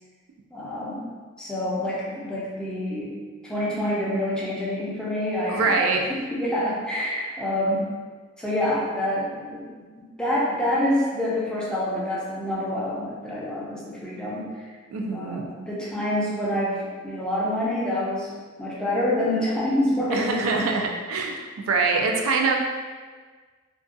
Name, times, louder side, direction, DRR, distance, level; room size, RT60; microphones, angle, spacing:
voice 1, 0.5-1.1 1.4-3.2 3.4-5.9 6.3-7.9 8.4-14.7 15.1-18.3 18.6-20.7, left 1 dB, 5° left, -6 dB, 0.4 m, -27 dB
voice 2, 5.5-6.0 14.9-15.4 20.1-21.4 21.7-22.6, right 4 dB, 85° right, 2 dB, 0.3 m, -24 dB
2.5 x 2.2 x 2.5 m, 1.5 s
head